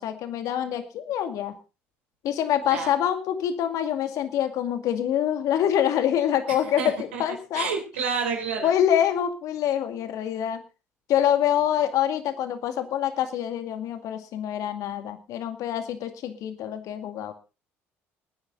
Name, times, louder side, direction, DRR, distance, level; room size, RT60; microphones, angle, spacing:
voice 1, 0.0-1.6 2.2-7.7 8.6-10.6 11.1-17.3, left 10 dB, 65° left, 9 dB, 2.2 m, -25 dB
voice 2, 6.5-7.2 7.5-8.7, right 6 dB, 85° right, 3 dB, 4.0 m, -29 dB
21.5 x 9.9 x 3.9 m, 0.32 s
hypercardioid pair, 60°, 6 cm